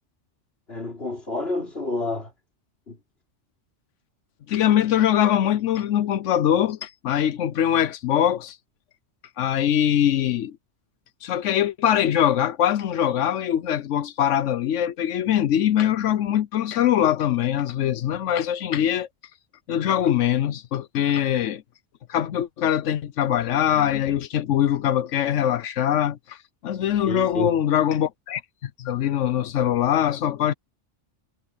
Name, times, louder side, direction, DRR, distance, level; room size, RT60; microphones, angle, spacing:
voice 1, 0.7-2.3 2.9-3.0 27.0-27.5, left 2 dB, 55° left, 4.3 m, -29 dB
voice 2, 4.5-8.6 9.4-10.6 11.2-19.1 19.7-21.6 22.1-26.4 26.6-30.5, left 10 dB, 85° left, 1.0 m, -22 dB
omnidirectional pair, 1.2 m